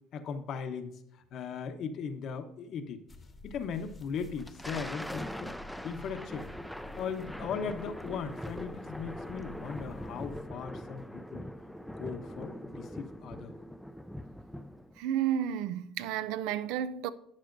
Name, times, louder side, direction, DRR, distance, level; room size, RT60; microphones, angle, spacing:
voice 1, 0.1-0.9 1.3-3.0 3.4-5.5 5.8-6.5 6.9-11.5 12.0-13.5, left 6 dB, 60° left, 0.9 m, -38 dB
sound 1, 3.1-10.5, left 3 dB, 25° left, 1.0 m, -50 dB
Thunder, 4.2-15.0, equal, ahead, 0.4 m, -42 dB
voice 2, 15.0-17.1, right 10 dB, 90° right, 0.4 m, -31 dB
11.5 x 8.6 x 2.6 m
cardioid pair, 120°, 0 cm